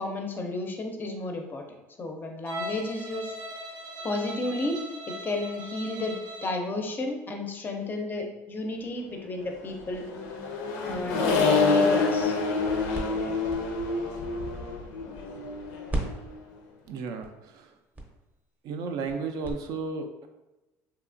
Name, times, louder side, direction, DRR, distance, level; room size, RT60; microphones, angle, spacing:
voice 1, 0.0-1.6 2.0-3.4 4.0-4.8 5.1-10.0 10.8-12.4 13.1-13.4, left 2 dB, 25° left, 3 dB, 0.5 m, -33 dB
Bowed string instrument, 2.4-6.7, equal, 85° right, 0.9 m, -39 dB
Accelerating revving vroom, 9.7-16.4, left 4 dB, 85° left, 0.4 m, -27 dB
sound 1, 12.2-15.6 15.9-19.5, right 1 dB, 20° right, 0.6 m, -39 dB
voice 2, 16.9-17.7 18.6-20.3, right 4 dB, 60° right, 6 dB, 0.3 m, -34 dB
2.8 x 2.3 x 2.5 m, 1.0 s
supercardioid pair, 95°, 7 cm